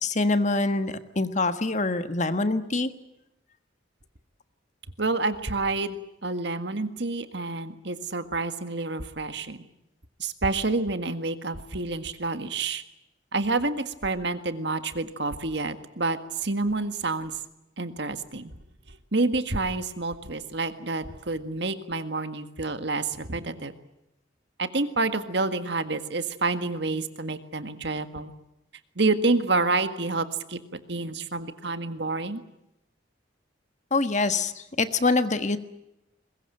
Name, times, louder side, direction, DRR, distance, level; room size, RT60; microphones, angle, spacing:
voice 1, 0.0-2.9 33.9-35.6, left 3 dB, 40° left, 10 dB, 1.4 m, -25 dB
voice 2, 5.0-9.6 10.2-12.8 13.3-17.4 17.8-18.5 19.1-23.7 24.6-28.3 29.0-30.6 30.9-32.4, right 3 dB, 60° right, 10 dB, 1.7 m, -28 dB
22.5 x 21.0 x 9.1 m, 0.87 s
head